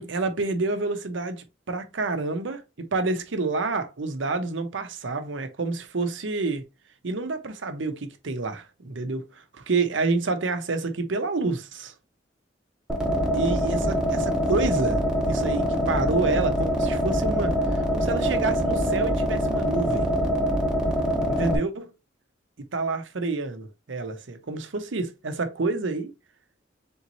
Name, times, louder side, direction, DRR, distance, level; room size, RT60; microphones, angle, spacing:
voice 1, 0.0-6.6 7.0-11.9 13.3-20.1 21.3-21.9 22.7-26.1, right 3 dB, 80° right, 0.7 m, -28 dB
sound 1, 12.9-21.6, equal, 5° right, 0.8 m, -24 dB
4.0 x 3.6 x 3.0 m
head